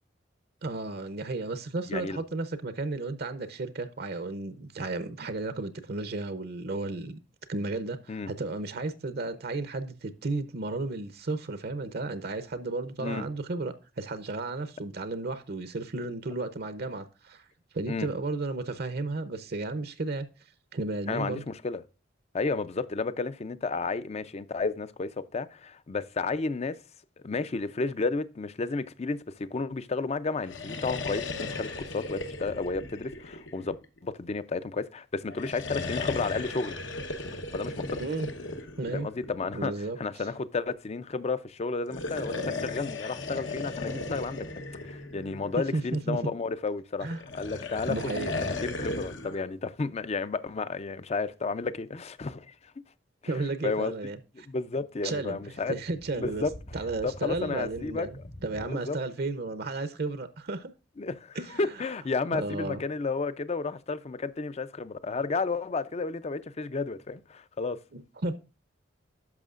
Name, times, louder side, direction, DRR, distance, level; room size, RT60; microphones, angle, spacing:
voice 1, 0.6-7.2 7.5-17.4 17.7-20.3 20.7-21.4 38.0-38.3 38.8-39.1 39.5-40.0 45.7-46.2 47.0-47.2 47.9-48.3 53.3-54.2 55.0-56.5 56.7-60.7 61.3-61.6 62.3-62.8 67.9-68.4, right 2 dB, 55° right, 0.7 m, -33 dB
voice 2, 1.9-2.2 8.1-8.3 13.0-13.3 17.9-18.1 21.1-21.8 22.3-26.8 27.2-33.8 34.0-36.8 37.5-38.0 38.9-39.7 40.0-44.5 44.8-47.1 47.3-52.5 53.6-53.9 54.4-55.7 56.2-56.5 57.0-58.1 58.6-59.0 61.0-67.8, left 4 dB, 35° left, 0.5 m, -32 dB
sound 1, 30.4-34.0 35.3-39.6 41.8-45.8 47.1-49.4, left 3 dB, 80° left, 1.1 m, -36 dB
sound 2, 55.3-58.7, equal, 60° left, 1.9 m, -47 dB
10.5 x 6.3 x 2.4 m
head